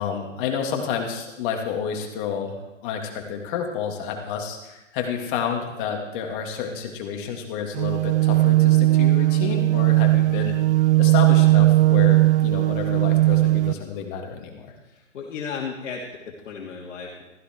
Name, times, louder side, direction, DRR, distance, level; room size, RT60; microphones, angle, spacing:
voice 1, 0.0-10.6 11.0-14.7, left 7 dB, 40° left, 2 dB, 3.1 m, -30 dB
sound 1, 7.8-13.7, right 18 dB, 60° right, 0.7 m, -18 dB
voice 2, 14.8-17.2, left 5 dB, 65° left, -3 dB, 3.0 m, -35 dB
15.5 x 15.0 x 4.8 m, 1.0 s
hypercardioid pair, 135°, 38 cm